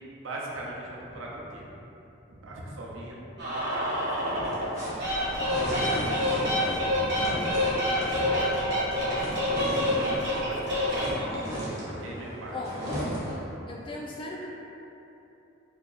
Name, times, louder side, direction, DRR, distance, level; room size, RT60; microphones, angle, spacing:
voice 1, 0.2-1.8 2.3-4.6 5.0-5.1 5.5-8.3 9.6-11.3 12.0-12.6, right 1 dB, 85° right, -3 dB, 0.6 m, -41 dB
sound 1, 3.4-4.7 5.0-11.4, left 1 dB, 60° right, 1.1 m, -27 dB
sound 2, 4.2-10.5 10.7-13.5, equal, 15° right, 0.6 m, -35 dB
voice 2, 12.5-12.8 13.7-14.5, left 2 dB, 25° left, -3 dB, 0.3 m, -37 dB
2.7 x 2.7 x 3.9 m, 2.9 s
head